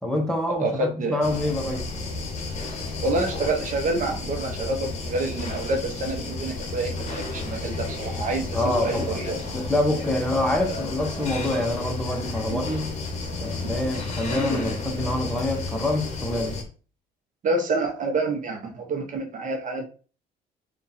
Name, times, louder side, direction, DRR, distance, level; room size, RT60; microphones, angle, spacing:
voice 1, 0.0-1.8 8.5-12.9 13.4-16.6, left 1 dB, 5° left, 0.9 m, -26 dB
voice 2, 0.6-1.2 3.0-9.4 12.5-12.6 13.6-13.7 17.4-19.9, right 2 dB, 50° right, 0.8 m, -28 dB
sound 1, 1.2-16.6, left 3 dB, 40° left, 1.1 m, -32 dB
3.6 x 2.5 x 4.1 m
cardioid pair, 110°, 17 cm